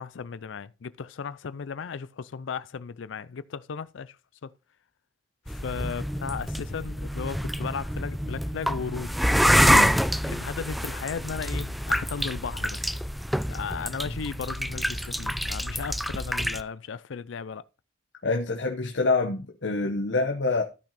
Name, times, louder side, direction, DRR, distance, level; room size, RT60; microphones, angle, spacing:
voice 1, 0.0-4.2 4.4-4.5 5.5-9.3 10.3-12.8 13.5-17.6, left 6 dB, 85° left, 0.5 m, -35 dB
sound 1, 5.5-16.6, equal, ahead, 0.4 m, -26 dB
voice 2, 9.6-10.0 18.2-20.6, left 3 dB, 70° left, 1.0 m, -26 dB
13.5 x 6.0 x 4.1 m
head